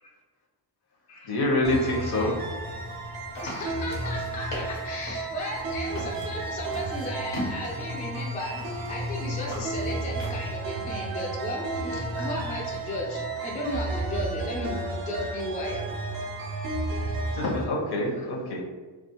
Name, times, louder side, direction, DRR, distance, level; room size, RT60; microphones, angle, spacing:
voice 1, 1.3-2.3 17.3-18.6, left 1 dB, 55° left, -1 dB, 0.7 m, -26 dB
sound 1, 1.6-17.6, right 2 dB, 50° right, 0.5 m, -32 dB
voice 2, 2.0-2.3 3.4-15.9 18.0-18.3, left 1 dB, 20° left, -2 dB, 0.3 m, -35 dB
sound 2, 2.4-10.5, equal, 80° left, 1.0 m, -41 dB
2.4 x 2.3 x 2.8 m, 1.3 s
wide cardioid pair, 115°, 46 cm